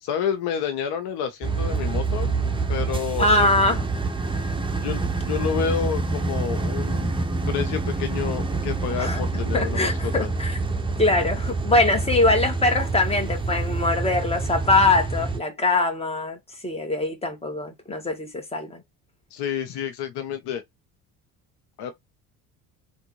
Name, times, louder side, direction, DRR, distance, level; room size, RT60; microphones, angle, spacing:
voice 1, 0.0-2.3 2.7-3.6 4.8-7.2 7.5-10.3 19.3-20.6 21.8-21.9, left 8 dB, 60° left, 0.9 m, -29 dB
sound 1, 1.4-15.4, right 3 dB, 10° right, 0.7 m, -26 dB
voice 2, 3.2-3.8 9.0-9.2 9.5-10.6 11.0-16.4 16.6-18.8, left 2 dB, 15° left, 1.4 m, -22 dB
3.5 x 2.5 x 3.0 m
hypercardioid pair, 70°, 44 cm